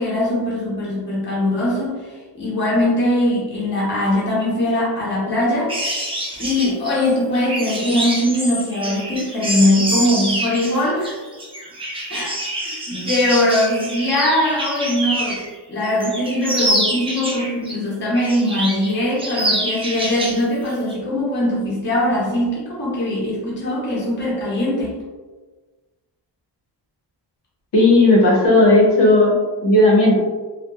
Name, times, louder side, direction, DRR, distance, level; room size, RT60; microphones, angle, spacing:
voice 1, 0.0-5.7 6.4-11.2 12.1-12.4 12.9-15.4 15.7-24.9, left 1 dB, 25° left, -7 dB, 0.7 m, -21 dB
sound 1, 5.7-15.5 15.8-17.7 18.1-18.9 19.2-20.4 20.7-20.9, right 1 dB, 15° right, 0.3 m, -26 dB
voice 2, 27.7-29.3 29.6-30.2, left 2 dB, 65° left, -4 dB, 0.8 m, -13 dB
2.8 x 2.1 x 2.3 m, 1.3 s
wide cardioid pair, 160°, 46 cm